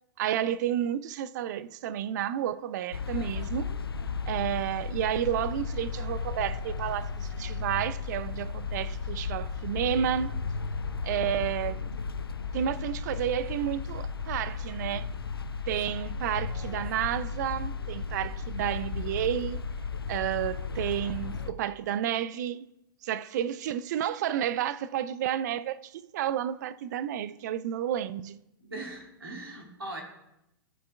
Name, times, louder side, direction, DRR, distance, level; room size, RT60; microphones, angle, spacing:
voice 1, 0.2-3.7 4.3-10.3 11.0-11.9 12.5-15.1 15.7-19.6 20.1-22.7 23.0-28.4, right 10 dB, 50° right, 0.4 m, -31 dB
sound 1, 2.9-21.5, left 5 dB, 90° left, 0.5 m, -34 dB
voice 2, 28.7-30.0, right 2 dB, 85° right, 2.4 m, -39 dB
14.0 x 6.5 x 2.3 m
figure-of-eight pair, 110°, 12 cm